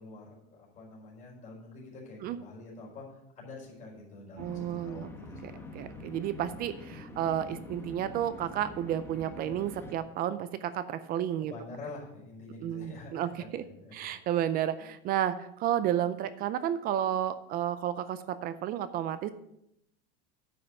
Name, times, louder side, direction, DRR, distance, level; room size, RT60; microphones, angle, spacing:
voice 1, 0.0-6.0 11.4-14.2, left 3 dB, 25° left, -4 dB, 4.5 m, -47 dB
sound 1, 4.4-10.0, left 2 dB, 10° left, 1.1 m, -45 dB
voice 2, 4.4-5.1 5.4-11.5 12.6-13.6 13.9-19.3, right 11 dB, 30° right, 14 dB, 0.4 m, -32 dB
9.5 x 5.6 x 6.4 m, 0.79 s
supercardioid pair, 155°, 31 cm